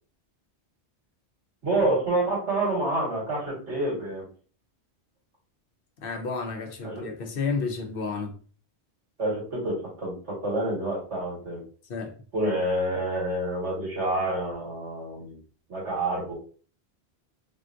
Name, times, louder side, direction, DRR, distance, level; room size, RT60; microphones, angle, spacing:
voice 1, 1.6-4.3 6.8-7.1 9.2-11.6 12.3-15.4 15.7-16.3, right 1 dB, 85° right, 2.0 m, -28 dB
voice 2, 6.0-8.3 11.9-12.1, left 4 dB, 60° left, 0.8 m, -31 dB
3.6 x 2.3 x 2.6 m
omnidirectional pair, 1.1 m